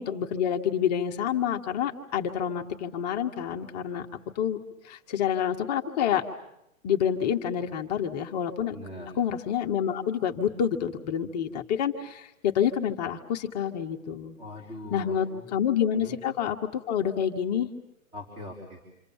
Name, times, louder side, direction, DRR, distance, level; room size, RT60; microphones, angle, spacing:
voice 1, 0.0-4.1 4.3-4.6 4.8-6.2 6.8-8.7 9.2-14.4 14.9-16.6 16.9-17.7, left 9 dB, 30° left, 2 dB, 1.2 m, -28 dB
voice 2, 8.7-9.1 14.4-15.5 15.9-16.2 18.1-18.8, left 1 dB, 15° right, 1 dB, 3.9 m, -41 dB
27.5 x 25.5 x 7.2 m, 0.83 s
hypercardioid pair, 160°, 42 cm